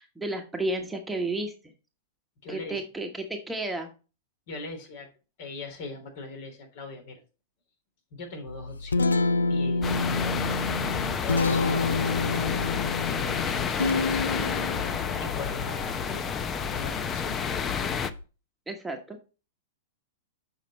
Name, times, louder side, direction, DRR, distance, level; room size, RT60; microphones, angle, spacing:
voice 1, 0.0-1.7 2.5-3.9 18.7-19.2, right 2 dB, 10° right, 3 dB, 1.3 m, -32 dB
voice 2, 2.4-2.8 4.5-5.1 5.4-7.2 8.1-9.2 9.5-10.7 11.2-12.6 13.6-14.5 15.2-16.2 16.5-17.4, left 3 dB, 55° left, 3 dB, 3.4 m, -41 dB
Guitar, 8.5-18.2, left 3 dB, 85° left, 0.5 m, -29 dB
sound 1, 9.8-18.1, left 7 dB, 25° left, 0.7 m, -30 dB
7.4 x 5.8 x 4.2 m, 0.33 s
hypercardioid pair, 110°, 0 cm